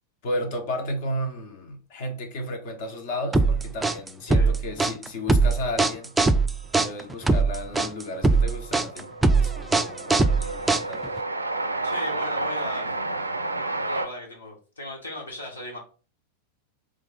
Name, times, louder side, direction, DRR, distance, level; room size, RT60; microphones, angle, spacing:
voice 1, 0.2-6.1 6.8-11.2, left 1 dB, 50° left, 1.1 m, -33 dB
sound 1, 3.3-11.2, right 3 dB, 10° right, 0.3 m, -21 dB
Train, 6.6-6.7 6.9-14.1, right 2 dB, 80° right, 0.4 m, -31 dB
voice 2, 11.8-12.9 13.6-15.8, left 1 dB, 75° left, 1.6 m, -37 dB
3.7 x 3.6 x 3.7 m
figure-of-eight pair, 90°, 0 cm